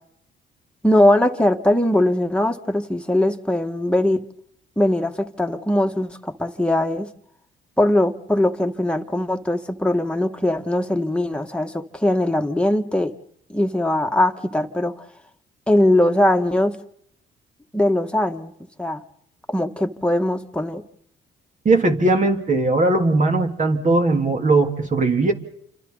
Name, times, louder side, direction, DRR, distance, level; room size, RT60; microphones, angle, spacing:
voice 1, 0.8-4.2 4.8-7.1 7.8-13.1 13.5-15.0 15.7-16.8 17.7-18.5 18.8-19.0 19.5-20.8, left 1 dB, 5° left, 4 dB, 2.0 m, -20 dB
voice 2, 21.6-25.3, right 2 dB, 40° right, 3 dB, 3.5 m, -19 dB
29.0 x 26.5 x 4.2 m, 0.69 s
cardioid pair, 90°, 20 cm